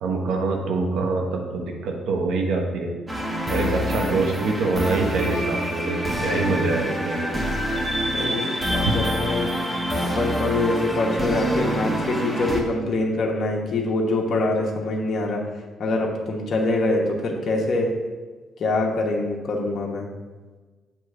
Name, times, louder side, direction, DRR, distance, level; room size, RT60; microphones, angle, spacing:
voice 1, 0.0-2.9 3.5-7.5 8.8-8.9, right 3 dB, 80° right, 2 dB, 1.1 m, -25 dB
sound 1, 3.1-12.6, equal, 15° right, 1.2 m, -26 dB
voice 2, 8.1-9.5 10.0-15.4 15.8-17.9 18.6-20.1, left 2 dB, 55° left, -1 dB, 1.1 m, -24 dB
7.3 x 3.2 x 6.1 m, 1.3 s
cardioid pair, 90°, 0 cm